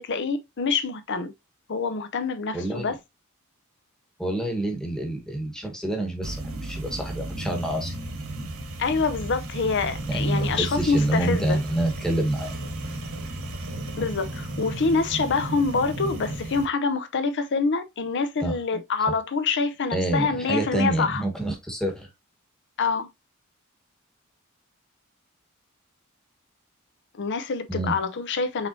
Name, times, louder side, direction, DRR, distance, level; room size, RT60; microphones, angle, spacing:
voice 1, 0.0-1.3 1.7-3.0 8.8-11.6 14.0-21.2 22.8-23.1 27.1-28.7, left 4 dB, 55° left, 0.6 m, -26 dB
voice 2, 2.5-2.9 4.2-8.0 10.1-12.5 18.4-18.5 19.9-22.1 27.7-27.9, right 1 dB, 5° left, 1.2 m, -27 dB
sound 1, 6.2-16.7, right 1 dB, 75° right, 1.3 m, -34 dB
5.7 x 3.4 x 2.6 m
head